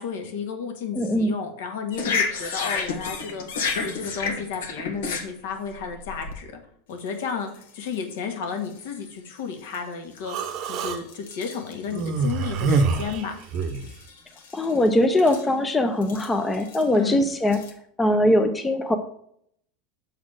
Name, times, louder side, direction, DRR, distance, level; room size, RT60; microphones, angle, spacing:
voice 1, 0.0-6.6 6.9-13.3 16.9-17.2, left 6 dB, 70° left, 4 dB, 1.6 m, -33 dB
voice 2, 1.0-1.3 14.5-17.6 18.0-19.0, left 1 dB, 10° left, 6 dB, 0.5 m, -21 dB
sound 1, 1.9-6.3 7.1-7.2 7.5-7.9 8.6-8.8 9.7-9.8 10.2-13.2 13.4-14.9 15.2-15.4 16.0-16.8 17.5-17.7, left 5 dB, 90° left, 1.5 m, -31 dB
Human voice, 10.3-11.0 11.9-13.9, right 4 dB, 40° right, 0.7 m, -25 dB
7.0 x 4.2 x 6.3 m, 0.67 s
supercardioid pair, 160°, 0 cm